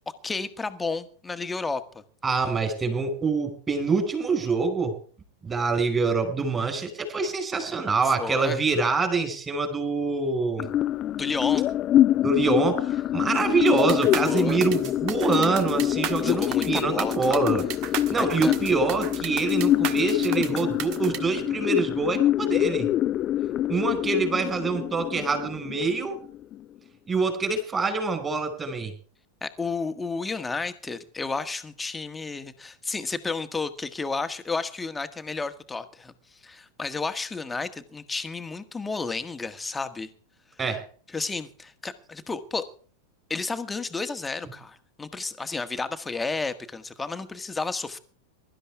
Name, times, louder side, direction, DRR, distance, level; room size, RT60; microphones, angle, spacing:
voice 1, 0.2-2.0 8.0-8.6 11.1-11.7 14.2-14.6 16.2-17.4 18.1-18.5 29.4-40.1 41.1-42.7 43.3-48.0, left 4 dB, 10° left, 1.6 m, -32 dB
voice 2, 2.2-5.0 5.4-10.7 12.2-17.6 18.1-22.9 23.7-26.2 27.1-28.9 40.6-40.8, right 4 dB, 20° right, 5.0 m, -25 dB
sound 1, 10.6-26.6, left 12 dB, 30° left, 0.5 m, -25 dB
sound 2, 13.7-21.2, right 10 dB, 40° right, 1.5 m, -34 dB
22.5 x 12.5 x 3.5 m
figure-of-eight pair, 90°, 0 cm